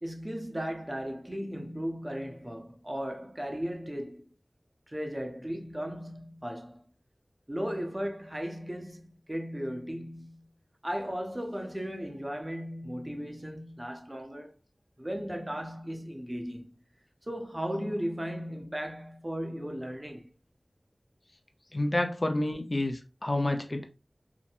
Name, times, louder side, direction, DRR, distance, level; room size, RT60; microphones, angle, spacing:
voice 1, 0.0-4.3 4.9-6.8 7.5-10.5 10.8-14.5 15.0-16.7 17.2-20.3, equal, 25° right, 0.6 m, -36 dB
voice 2, 21.7-23.9, left 1 dB, 45° left, 0.4 m, -29 dB
2.8 x 2.1 x 2.4 m
wide cardioid pair, 45°, 0 cm